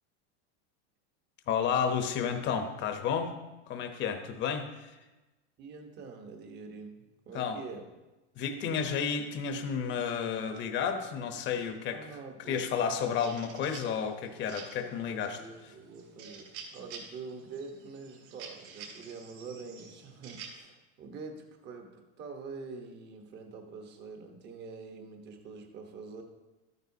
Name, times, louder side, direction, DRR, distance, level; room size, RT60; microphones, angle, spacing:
voice 1, 1.5-3.3 3.7-5.0 7.3-7.6 8.4-12.1 12.5-15.4, left 7 dB, 30° left, 6 dB, 0.9 m, -31 dB
voice 2, 5.6-7.9 11.9-12.6 14.8-26.2, right 4 dB, 30° right, 4 dB, 1.1 m, -45 dB
sound 1, 12.7-20.6, right 5 dB, 60° right, 3.1 m, -49 dB
12.5 x 9.4 x 2.8 m, 1.1 s
supercardioid pair, 155°, 35 cm